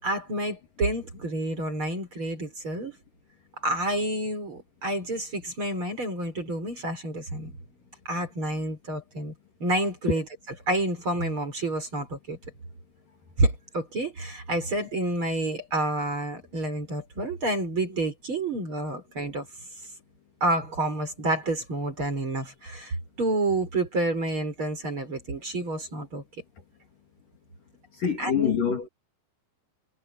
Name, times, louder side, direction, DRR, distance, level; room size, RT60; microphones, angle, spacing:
voice 1, 0.0-3.0 3.6-7.6 8.1-9.3 9.6-10.2 10.7-12.4 13.4-19.5 20.4-26.2 28.2-28.6, right 1 dB, 25° right, 5.5 m, -29 dB
voice 2, 27.9-28.9, left 7 dB, 50° left, 3.9 m, -26 dB
omnidirectional pair, 5.3 m